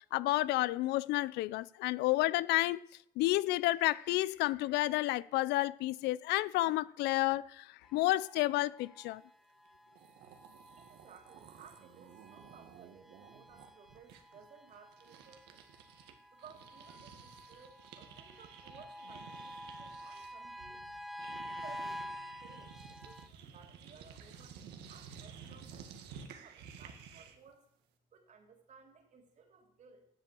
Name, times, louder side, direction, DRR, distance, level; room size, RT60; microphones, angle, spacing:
voice 1, 0.1-2.8 3.2-9.2, left 17 dB, 85° left, 0.5 m, -31 dB
sound 1, 7.9-23.3, equal, ahead, 0.6 m, -49 dB
sound 2, 9.7-9.8 9.9-16.1 16.4-27.5, right 7 dB, 85° right, 1.8 m, -53 dB
voice 2, 10.8-15.6 16.3-20.8 21.5-27.7 28.1-30.1, right 6 dB, 45° right, 3.2 m, -59 dB
11.5 x 7.9 x 7.5 m
cardioid pair, 110°, 17 cm